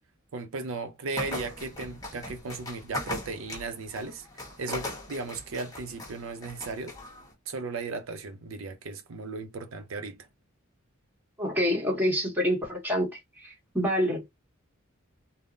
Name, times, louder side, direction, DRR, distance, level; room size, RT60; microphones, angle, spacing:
voice 1, 0.3-7.0 7.5-10.3, right 3 dB, 75° right, 0.5 m, -36 dB
sound 1, 1.1-7.3, left 1 dB, 15° left, 1.0 m, -39 dB
voice 2, 11.4-13.1 13.4-14.4, equal, 10° right, 1.2 m, -27 dB
3.5 x 2.0 x 2.5 m
head